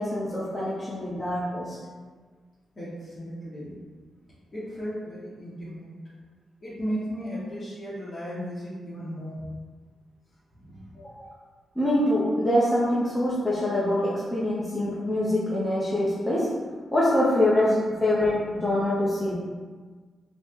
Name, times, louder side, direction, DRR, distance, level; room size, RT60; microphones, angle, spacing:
voice 1, 0.0-1.8 11.0-11.3 11.8-16.5 16.9-19.3, left 1 dB, 15° left, -9 dB, 0.8 m, -24 dB
voice 2, 2.8-3.8 4.5-5.9 6.6-9.4 10.5-10.9, equal, 45° left, -11 dB, 0.9 m, -35 dB
3.2 x 2.1 x 3.0 m, 1.4 s
hypercardioid pair, 40°, 0 cm